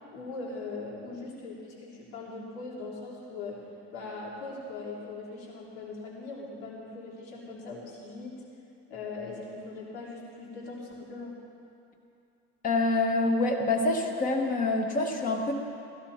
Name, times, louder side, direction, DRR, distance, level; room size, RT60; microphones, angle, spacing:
voice 1, 0.1-3.6 3.9-8.3 8.9-11.3, left 3 dB, 60° left, -4 dB, 3.5 m, -40 dB
voice 2, 12.6-15.5, left 2 dB, 25° left, 3 dB, 1.1 m, -26 dB
16.5 x 15.0 x 4.3 m, 2.6 s
cardioid pair, 180°, 33 cm